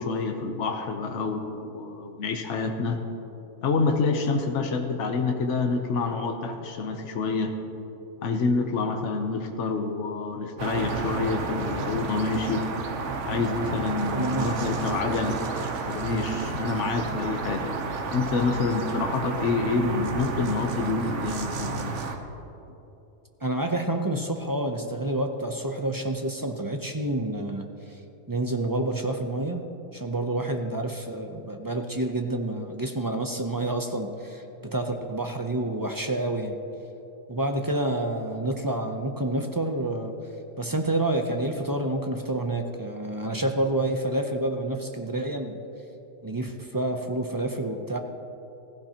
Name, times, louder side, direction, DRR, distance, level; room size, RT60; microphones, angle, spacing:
voice 1, 0.0-3.0 3.6-7.5 8.2-12.7 13.2-15.4 15.9-17.8 18.1-22.0, left 4 dB, 70° left, 4 dB, 1.2 m, -27 dB
sound 1, 10.6-22.2, right 4 dB, 70° right, 1.3 m, -31 dB
voice 2, 14.1-14.5 23.4-27.7 28.3-29.7 29.9-36.6 37.3-40.1 40.6-45.6 46.2-48.0, right 1 dB, 25° right, 4 dB, 0.5 m, -28 dB
16.0 x 15.5 x 2.9 m, 3.0 s
omnidirectional pair, 1.3 m